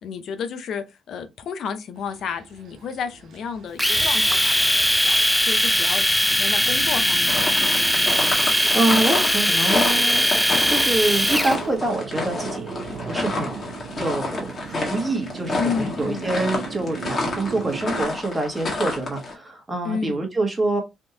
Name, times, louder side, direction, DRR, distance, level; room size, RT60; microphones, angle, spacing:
voice 1, 0.0-7.6 15.6-16.3 19.8-20.2, left 6 dB, 70° left, 0.6 m, -32 dB
sound 1, 2.0-18.0, right 6 dB, 70° right, 0.6 m, -38 dB
Domestic sounds home sounds, 3.8-11.6, equal, 5° left, 0.4 m, -20 dB
sound 2, 7.3-19.3, left 2 dB, 40° left, 1.6 m, -29 dB
voice 2, 8.7-10.3 10.7-12.7 13.1-20.8, right 2 dB, 25° right, 1.3 m, -26 dB
3.5 x 2.6 x 2.7 m
cardioid pair, 90°, 0 cm